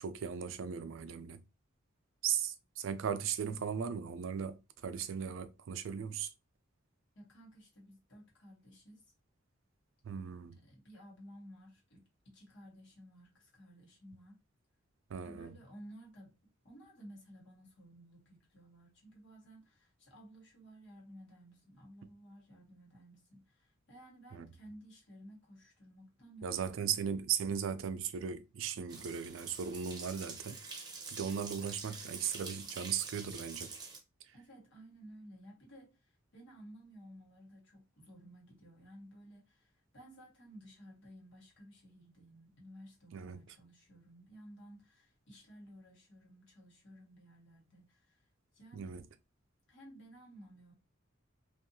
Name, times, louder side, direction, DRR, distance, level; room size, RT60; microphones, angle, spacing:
voice 1, 0.0-1.4 2.2-6.3 10.0-10.6 15.1-15.6 24.3-24.5 26.4-30.6 31.1-33.7 43.1-43.4 48.7-49.0, right 7 dB, 75° right, 0.4 m, -37 dB
voice 2, 7.1-9.1 10.6-14.4 15.2-16.4 16.6-27.0 34.3-48.3 48.5-48.9 49.7-50.7, equal, 65° left, 1.1 m, -55 dB
sound 1, 28.9-34.0, right 4 dB, 20° right, 0.7 m, -47 dB
2.7 x 2.3 x 2.6 m
head